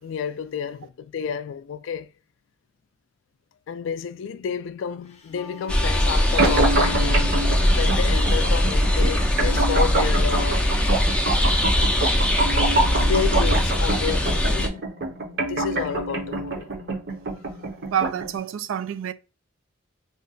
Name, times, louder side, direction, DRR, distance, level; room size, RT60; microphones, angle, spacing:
voice 1, 0.0-2.1 3.7-7.4 7.8-10.7 13.0-14.9 15.4-16.7, left 7 dB, 75° left, 0.3 m, -30 dB
Wind instrument woodwind instrument, 5.1-10.5, left 5 dB, 35° left, 0.7 m, -41 dB
sound 1, 5.7-14.7, left 1 dB, 5° left, 0.4 m, -21 dB
sound 2, 6.4-18.4, right 2 dB, 55° right, 0.7 m, -27 dB
voice 2, 17.9-19.1, right 9 dB, 90° right, 0.3 m, -27 dB
2.5 x 2.2 x 3.9 m
head